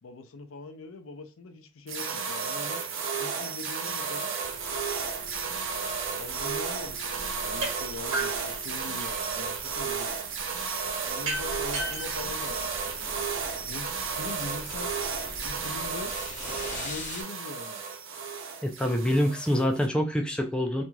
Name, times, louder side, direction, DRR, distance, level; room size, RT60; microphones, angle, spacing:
voice 1, 0.0-2.8 3.2-4.3 6.1-10.2 11.1-13.3 13.6-14.9 15.4-16.1 16.7-17.8, left 3 dB, 80° left, 0.5 m, -42 dB
sound 1, 1.9-19.9, right 5 dB, 65° right, 0.5 m, -33 dB
sound 2, 4.4-17.2, left 2 dB, 35° left, 0.7 m, -44 dB
sound 3, 7.6-7.7 8.1-9.3 11.2-13.2, right 2 dB, 80° right, 1.1 m, -35 dB
voice 2, 18.6-20.8, equal, 5° left, 0.4 m, -26 dB
3.0 x 2.5 x 2.2 m
head